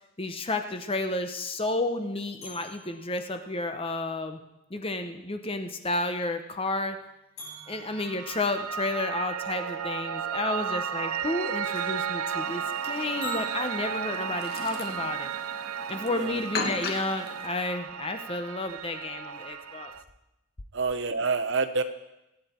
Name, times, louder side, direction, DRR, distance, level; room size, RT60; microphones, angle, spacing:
voice 1, 0.2-4.4 4.7-7.0 7.7-15.3 15.9-19.9, left 2 dB, 25° left, 7 dB, 0.8 m, -31 dB
sound 1, 2.4-5.8 6.1-6.2 7.4-9.1 11.6-11.8 13.2-13.5, equal, 80° left, 6.2 m, -45 dB
Piano, 7.7-20.0, right 8 dB, 75° right, 0.5 m, -34 dB
Chirp tweet, 12.4-17.5, left 4 dB, 45° left, 1.4 m, -38 dB
voice 2, 20.7-21.8, right 4 dB, 55° right, 10 dB, 0.9 m, -27 dB
23.0 x 9.2 x 4.4 m, 0.92 s
head